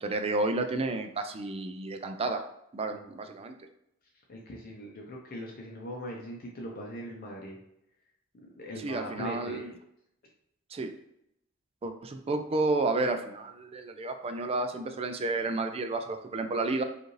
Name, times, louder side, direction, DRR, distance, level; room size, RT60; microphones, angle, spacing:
voice 1, 0.0-2.4 2.7-3.5 8.8-9.7 10.7-10.9 11.8-16.8, right 2 dB, 30° right, 6 dB, 0.4 m, -31 dB
voice 2, 4.3-7.6 8.4-9.7, left 1 dB, 45° left, -1 dB, 0.6 m, -40 dB
5.0 x 2.5 x 3.1 m, 0.78 s
head